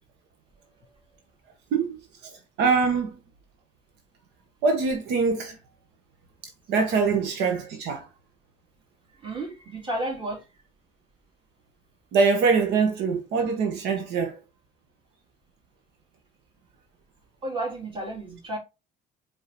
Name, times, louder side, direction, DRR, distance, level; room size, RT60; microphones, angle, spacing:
voice 1, 2.6-3.2 4.6-5.6 6.7-8.0 12.1-14.4, right 5 dB, 85° right, 1.0 m, -23 dB
voice 2, 9.2-10.4 17.4-18.6, right 1 dB, 30° right, 2.7 m, -32 dB
5.1 x 3.6 x 2.9 m
cardioid pair, 110°, 17 cm